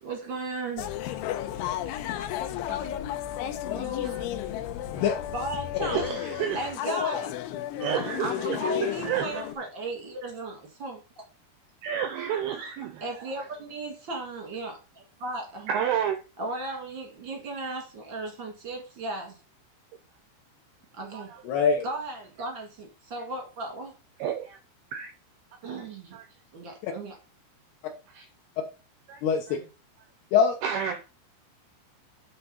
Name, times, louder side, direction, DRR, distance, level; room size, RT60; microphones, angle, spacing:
voice 1, 0.0-0.9 2.7-3.0 5.3-6.0 6.5-7.4 8.2-11.2 13.0-15.7 16.4-19.3 21.0-21.3 21.8-23.9 25.6-26.2 26.5-27.2 29.5-29.6, right 2 dB, 50° right, 1.3 m, -36 dB
sound 1, 0.8-9.6, left 11 dB, 90° left, 3.1 m, -33 dB
voice 2, 3.7-4.1 4.9-5.2 5.8-6.0 21.5-21.8 26.8-26.9 29.2-29.6 30.3-30.5, left 6 dB, 70° left, 2.7 m, -24 dB
voice 3, 5.9-6.7 7.8-9.4 11.8-13.5 15.7-16.2 21.1-21.4 24.2-24.6 24.9-25.1 26.1-26.3 28.1-28.3 29.1-29.2 29.5-29.6 30.6-31.0, right 8 dB, 85° right, 2.3 m, -31 dB
9.0 x 4.2 x 5.5 m
omnidirectional pair, 5.5 m